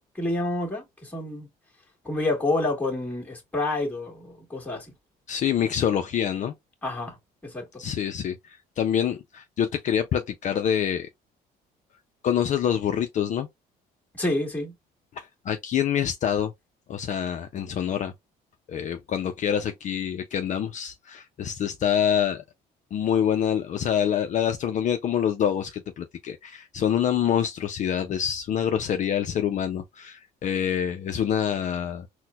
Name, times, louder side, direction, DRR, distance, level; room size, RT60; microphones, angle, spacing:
voice 1, 0.0-1.5 2.0-4.9 6.8-7.2 7.4-7.8 14.2-14.7, left 2 dB, 10° left, 1.5 m, -28 dB
voice 2, 5.3-6.5 7.8-11.1 12.2-13.5 15.2-16.5 16.9-18.1 18.7-22.4 22.9-32.1, left 9 dB, 45° left, 0.4 m, -26 dB
4.1 x 2.1 x 2.2 m
cardioid pair, 110°, 17 cm